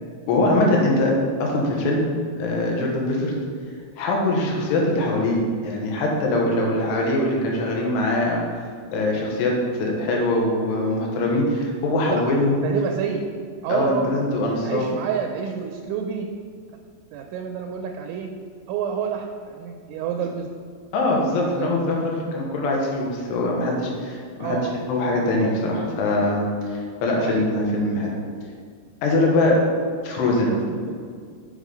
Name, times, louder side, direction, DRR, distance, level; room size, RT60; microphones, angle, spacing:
voice 1, 0.3-1.1 1.4-2.0 2.4-3.3 4.0-8.4 8.9-9.5 9.8-12.6 13.7-14.9 20.9-24.6 24.9-26.5 26.7-28.1 29.0-29.6 30.0-30.5, left 2 dB, 70° left, -2 dB, 3.1 m, -22 dB
voice 2, 12.6-13.2 13.6-14.1 14.6-16.3 17.1-18.3 18.7-20.5 21.4-21.7 24.4-24.7 27.2-27.5 30.5-31.0, right 7 dB, 85° right, 3 dB, 2.8 m, -28 dB
7.3 x 5.5 x 5.0 m, 2.1 s
omnidirectional pair, 5.6 m